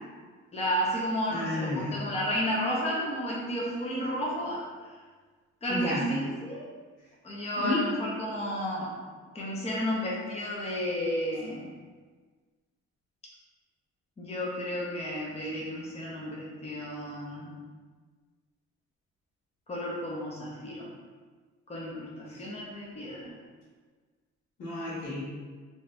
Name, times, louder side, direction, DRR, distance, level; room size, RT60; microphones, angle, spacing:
voice 1, 0.5-4.9 5.6-6.6 7.2-8.9 9.3-11.7 14.2-17.6 19.7-20.9 21.7-23.3, equal, 20° left, -4 dB, 0.7 m, -32 dB
voice 2, 1.3-2.0 5.7-6.1 7.6-7.8 22.3-22.4 24.6-25.2, left 2 dB, 80° left, -7 dB, 1.3 m, -31 dB
2.7 x 2.4 x 3.2 m, 1.5 s
cardioid pair, 90°, 30 cm